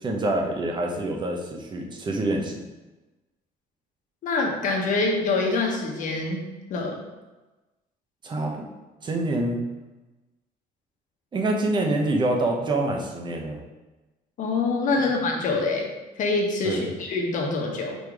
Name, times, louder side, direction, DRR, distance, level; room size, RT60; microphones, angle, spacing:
voice 1, 0.0-2.6 8.2-8.7 9.0-9.6 11.3-13.6 16.6-16.9, right 2 dB, 25° right, 1 dB, 0.9 m, -26 dB
voice 2, 4.2-7.0 14.4-15.9 16.2-18.0, left 3 dB, 50° left, 0 dB, 1.2 m, -25 dB
5.1 x 4.0 x 4.7 m, 1.1 s
cardioid pair, 150°, 17 cm